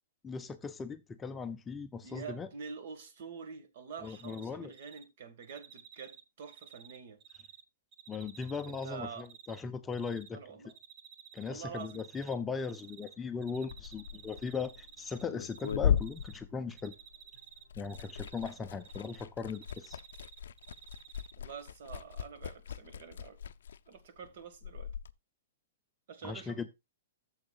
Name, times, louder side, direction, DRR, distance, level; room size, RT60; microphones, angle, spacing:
voice 1, 0.2-2.5 4.0-4.7 8.1-10.4 11.3-16.9 17.8-20.0 26.2-26.7, left 5 dB, 10° left, 0.5 m, -38 dB
voice 2, 2.0-7.2 8.7-9.3 10.3-10.7 11.5-12.0 21.4-23.4 23.9-24.9 26.1-26.6, right 6 dB, 55° right, 1.6 m, -46 dB
Cricket, 4.0-4.5 4.7-5.0 5.4-7.6 7.9-9.6 9.9-10.3 10.7-11.5 11.8-13.2 13.4-15.7 16.0-16.4 16.7-19.2 19.5-21.3, right 9 dB, 30° right, 0.7 m, -53 dB
sound 1, 12.8-19.6, right 1 dB, 75° right, 4.0 m, -66 dB
Liquid, 13.5-17.2 17.5-25.1, left 8 dB, 80° left, 0.4 m, -37 dB
12.0 x 7.2 x 2.4 m
hypercardioid pair, 155°, 0 cm